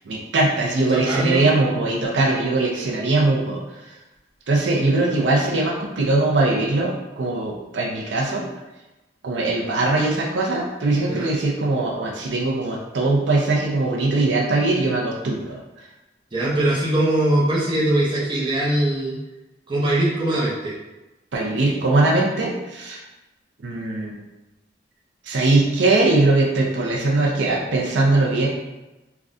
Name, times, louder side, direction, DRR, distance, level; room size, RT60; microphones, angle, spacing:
voice 1, 0.0-3.6 3.9-4.0 4.5-8.5 9.2-15.6 21.3-23.0 23.6-24.2 25.2-28.5, right 2 dB, 80° right, -2 dB, 0.5 m, -21 dB
voice 2, 0.8-1.5 11.1-11.3 16.3-19.2 19.7-20.8, right 1 dB, 25° right, -6 dB, 0.7 m, -21 dB
3.5 x 2.2 x 2.5 m, 1.0 s
head